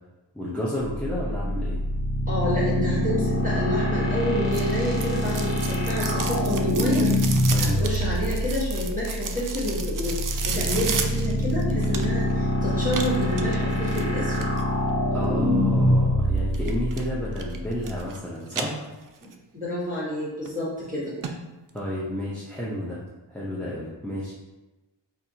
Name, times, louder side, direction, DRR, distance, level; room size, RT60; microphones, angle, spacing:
voice 1, 0.3-1.8 7.5-7.8 15.1-18.8 21.7-23.0 23.3-24.3, left 1 dB, 5° left, -7 dB, 0.7 m, -31 dB
sound 1, 0.8-18.0, left 1 dB, 25° left, 1.1 m, -25 dB
voice 2, 2.3-14.5 19.5-21.1, left 1 dB, 15° right, -8 dB, 1.3 m, -29 dB
sound 2, 4.5-12.3 12.9-14.6 16.5-17.0 17.4-18.2 18.5-19.3 19.7-19.8 20.5-20.6 20.9-21.0 21.2-21.3 21.7-21.8, right 6 dB, 45° right, 0.5 m, -33 dB
4.1 x 2.6 x 2.8 m, 1.1 s
cardioid pair, 55°, 45 cm